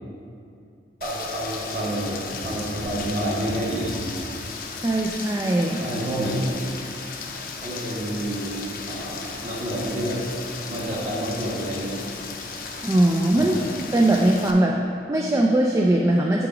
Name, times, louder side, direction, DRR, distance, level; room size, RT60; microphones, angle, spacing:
Rain, 1.0-14.5, left 4 dB, 50° left, 0.6 m, -35 dB
voice 1, 1.0-4.0 5.8-6.4 7.6-10.2 10.7-12.0 13.3-13.6, right 1 dB, 40° right, -5 dB, 1.4 m, -29 dB
voice 2, 4.8-5.8 12.8-13.6 13.9-16.5, right 1 dB, 15° right, 0 dB, 0.3 m, -20 dB
6.8 x 4.9 x 4.8 m, 2.6 s
head